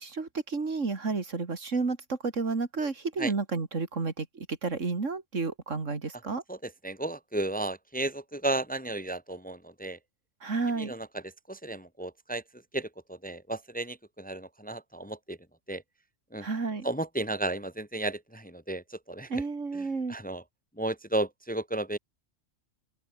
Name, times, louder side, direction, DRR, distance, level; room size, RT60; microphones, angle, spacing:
voice 1, 0.0-6.4 10.4-10.9 16.4-16.9 19.3-20.1, right 4 dB, 85° right, 2.9 m, -31 dB
voice 2, 6.5-10.0 10.8-15.4 15.7-15.8 16.3-16.5 16.8-19.4 19.7-20.4 20.8-22.0, right 2 dB, 10° left, 1.0 m, -34 dB
open air
omnidirectional pair, 1.3 m